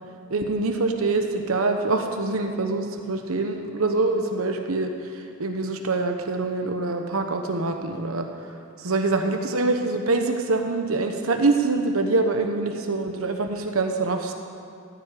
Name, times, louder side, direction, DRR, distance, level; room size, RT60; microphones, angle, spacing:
voice 1, 0.3-14.3, right 3 dB, 85° right, 4 dB, 1.1 m, -25 dB
15.0 x 8.0 x 9.8 m, 2.4 s
head